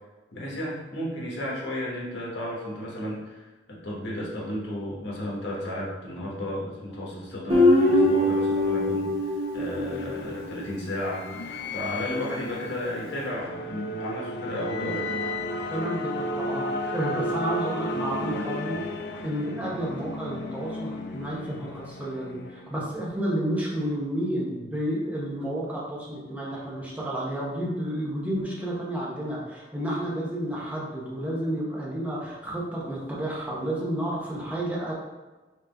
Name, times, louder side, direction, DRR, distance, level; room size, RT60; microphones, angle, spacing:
voice 1, 0.3-11.3 11.7-15.1, left 1 dB, 80° left, -4 dB, 1.2 m, -33 dB
Guitar, 7.5-10.8, left 1 dB, 40° right, 1.0 m, -22 dB
sound 1, 9.3-23.0, left 1 dB, 65° left, 0.4 m, -34 dB
voice 2, 15.7-18.9 19.2-34.9, right 1 dB, 10° right, -6 dB, 0.9 m, -31 dB
3.8 x 3.1 x 3.4 m, 1.2 s
head